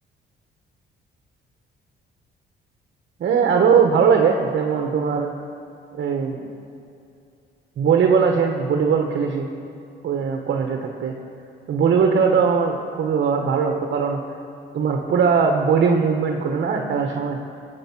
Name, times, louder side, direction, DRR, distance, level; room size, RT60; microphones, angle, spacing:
voice 1, 3.2-5.3 5.9-6.5 7.8-9.5 10.0-11.1 11.7-14.2 14.7-17.4, right 6 dB, 60° right, 3 dB, 1.3 m, -20 dB
19.0 x 8.6 x 6.1 m, 2.7 s
cardioid pair, 90°, 20 cm